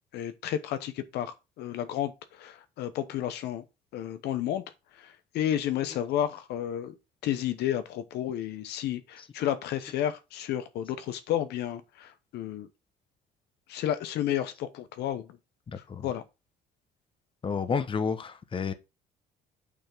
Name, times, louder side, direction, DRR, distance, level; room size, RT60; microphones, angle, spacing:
voice 1, 0.1-3.6 3.9-4.6 4.9-6.9 7.2-12.7 13.7-15.3 16.0-16.2, left 11 dB, 75° left, 0.9 m, -31 dB
voice 2, 15.7-16.1 17.4-18.7, left 5 dB, 30° left, 1.0 m, -30 dB
8.6 x 3.5 x 6.0 m
cardioid pair, 110°, 17 cm